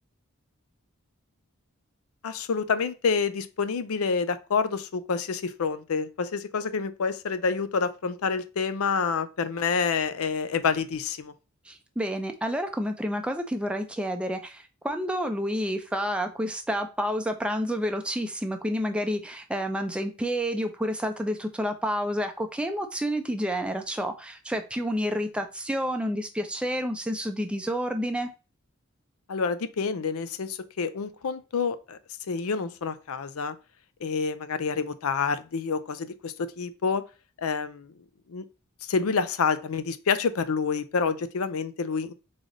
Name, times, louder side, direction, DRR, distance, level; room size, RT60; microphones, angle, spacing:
voice 1, 2.2-11.3 29.3-32.0 32.3-33.5 34.0-37.0 37.4-37.9 38.3-38.4 38.8-42.1, left 5 dB, 75° left, 0.5 m, -28 dB
voice 2, 11.7-28.3, equal, 5° right, 0.4 m, -29 dB
3.7 x 3.3 x 3.8 m
head